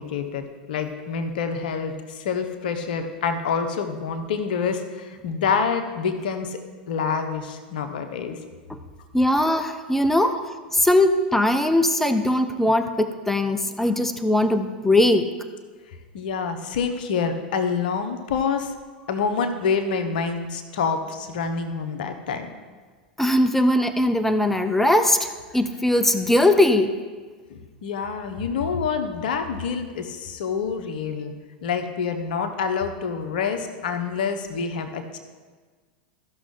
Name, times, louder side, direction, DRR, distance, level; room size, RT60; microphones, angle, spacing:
voice 1, 0.0-6.6 6.9-8.4 16.1-18.7 19.1-22.5 27.5-31.3 31.6-35.2, left 5 dB, 70° left, 6 dB, 1.0 m, -27 dB
voice 2, 9.1-10.4 10.7-15.3 23.2-27.0, left 1 dB, 5° left, 9 dB, 0.7 m, -20 dB
14.5 x 6.2 x 3.8 m, 1.4 s
hypercardioid pair, 95°, 5 cm